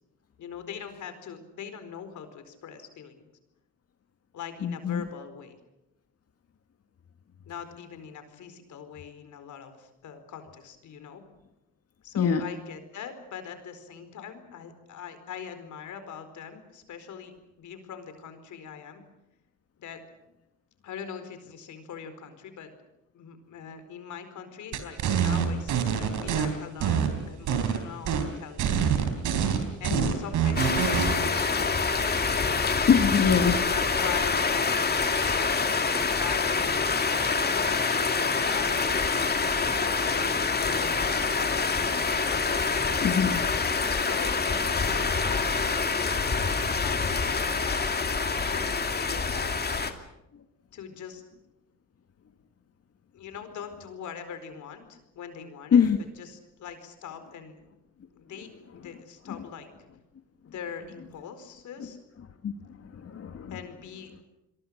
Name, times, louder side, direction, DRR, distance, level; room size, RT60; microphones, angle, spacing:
voice 1, 0.4-3.2 4.3-5.6 7.4-11.2 12.0-19.0 19.8-20.0 20.8-22.7 23.1-29.0 29.8-32.0 33.5-35.9 36.2-41.6 42.3-43.3 44.0-49.8 50.7-51.2 53.1-55.8 56.2-57.6 58.1-59.7 60.4-62.0 63.5-64.2, left 7 dB, 75° left, 10 dB, 4.5 m, -42 dB
voice 2, 4.6-5.0 12.2-12.4 29.9-30.1 32.9-33.6 43.0-43.4 55.7-56.0 62.4-62.5 63.0-63.5, left 7 dB, 55° left, 5 dB, 2.1 m, -23 dB
sound 1, 24.7-26.5 26.8-27.8 28.1-28.3 28.6-31.2, right 8 dB, 80° right, 4.0 m, -25 dB
sound 2, 30.6-49.9, left 4 dB, 30° left, 2.6 m, -26 dB
28.5 x 22.5 x 6.6 m, 0.91 s
cardioid pair, 90°, 30 cm